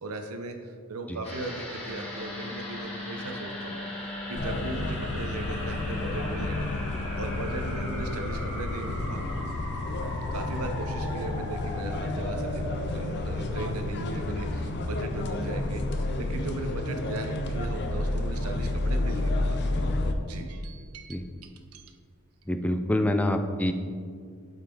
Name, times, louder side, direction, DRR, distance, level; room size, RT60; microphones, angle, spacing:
voice 1, 0.0-6.8 7.2-9.3 10.3-19.8 20.2-21.9, right 2 dB, 90° right, 5 dB, 0.8 m, -38 dB
sound 1, 1.2-15.9 16.2-16.3, equal, 30° left, 2.0 m, -39 dB
Wind instrument woodwind instrument, 1.8-8.3, left 2 dB, 80° left, 1.0 m, -41 dB
sound 2, 4.4-20.1, left 2 dB, 50° left, 0.6 m, -31 dB
voice 2, 22.5-23.7, left 1 dB, 5° left, 6 dB, 0.4 m, -26 dB
8.3 x 5.5 x 3.8 m, 2.1 s
head